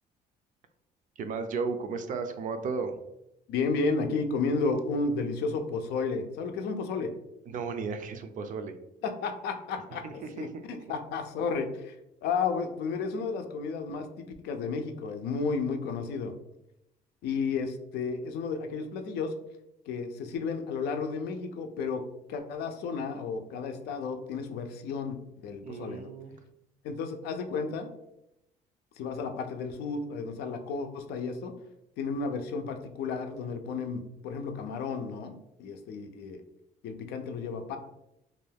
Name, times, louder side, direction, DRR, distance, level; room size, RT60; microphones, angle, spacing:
voice 1, 1.2-3.0 7.5-8.7 9.9-10.6 25.6-26.4, right 4 dB, 50° right, 7 dB, 0.4 m, -34 dB
voice 2, 3.5-7.1 9.0-10.5 10.9-12.0 12.2-16.3 17.2-19.3 19.9-22.0 22.3-26.1 26.8-27.9 29.0-31.5 32.0-36.4 36.8-37.8, left 4 dB, 75° left, 6 dB, 0.4 m, -32 dB
2.5 x 2.2 x 3.3 m, 0.84 s
cardioid pair, 110°, 17 cm